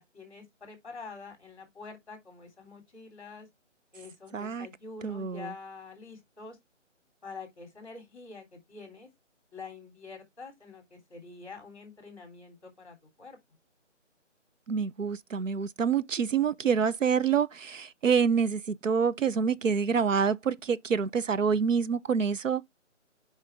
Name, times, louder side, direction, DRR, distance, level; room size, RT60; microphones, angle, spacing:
voice 1, 0.0-3.5 3.9-6.6 7.2-9.1 9.5-13.4, left 4 dB, 25° left, 3.1 m, -46 dB
voice 2, 4.3-4.7 5.0-5.5 14.7-22.6, right 6 dB, 85° right, 0.7 m, -27 dB
6.4 x 5.1 x 3.4 m
figure-of-eight pair, 170°, 37 cm